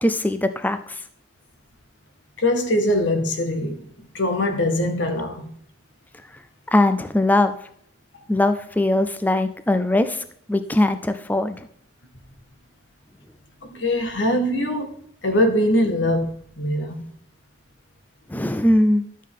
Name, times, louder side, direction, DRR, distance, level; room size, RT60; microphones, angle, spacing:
voice 1, 0.0-1.0 6.7-7.5 8.3-11.7 18.3-19.0, left 1 dB, 10° left, 0.4 m, -21 dB
voice 2, 2.4-5.5 13.6-16.3 16.6-16.9, left 1 dB, 90° left, 1.6 m, -22 dB
11.5 x 7.3 x 3.7 m
head